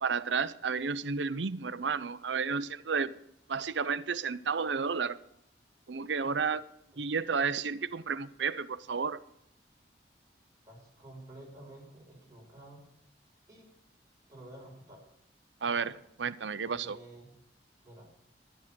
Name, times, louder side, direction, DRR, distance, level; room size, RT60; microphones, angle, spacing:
voice 1, 0.0-3.1 3.5-5.2 5.9-6.6 7.0-9.2 15.6-15.9 16.2-17.0, right 5 dB, 80° right, 15 dB, 0.7 m, -32 dB
voice 2, 10.7-12.8 13.5-13.7 14.3-15.1 15.6-15.9 16.6-17.3 17.8-18.1, right 1 dB, 20° right, -3 dB, 6.0 m, -51 dB
11.5 x 11.0 x 6.1 m, 0.75 s
head